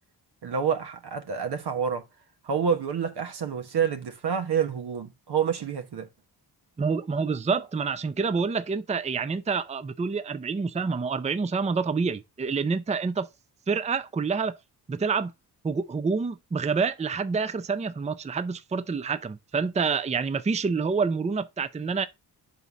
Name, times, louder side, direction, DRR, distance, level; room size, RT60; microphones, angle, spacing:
voice 1, 0.4-2.0 2.4-6.1, right 7 dB, 75° right, 1.2 m, -28 dB
voice 2, 6.8-13.3 13.7-14.6 14.9-15.3 15.6-22.1, right 5 dB, 15° right, 0.5 m, -27 dB
5.4 x 4.1 x 6.0 m
cardioid pair, 105°, 40 cm